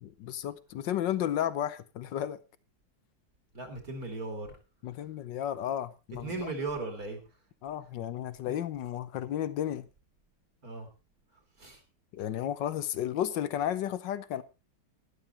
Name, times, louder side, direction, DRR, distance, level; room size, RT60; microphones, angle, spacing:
voice 1, 0.0-2.4 4.8-6.5 7.6-9.9 12.1-14.4, left 11 dB, 65° left, 1.3 m, -33 dB
voice 2, 3.5-4.5 6.2-7.2 8.5-8.6 10.6-10.9 11.6-11.8, right 3 dB, 45° right, 2.9 m, -37 dB
12.5 x 11.0 x 4.2 m
omnidirectional pair, 2.3 m